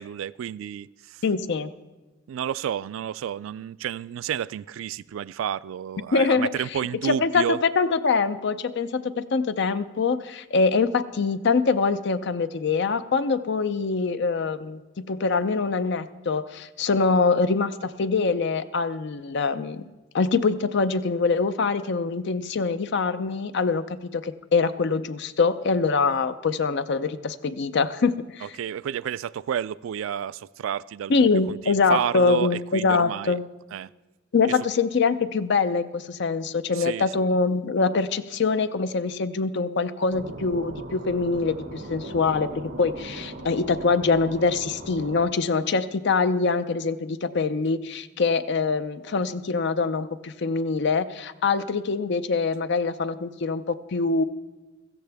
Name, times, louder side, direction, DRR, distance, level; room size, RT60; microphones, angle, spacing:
voice 1, 0.0-1.2 2.3-7.6 28.4-33.4 33.7-33.9 34.4-34.6 36.7-37.3, right 9 dB, 85° right, 0.3 m, -31 dB
voice 2, 1.2-1.7 6.1-6.5 7.0-19.9 20.1-28.4 31.1-33.4 34.3-54.2, left 4 dB, 60° left, 0.6 m, -24 dB
sound 1, 40.1-45.2, right 1 dB, 65° right, 1.8 m, -38 dB
16.5 x 14.0 x 3.5 m
head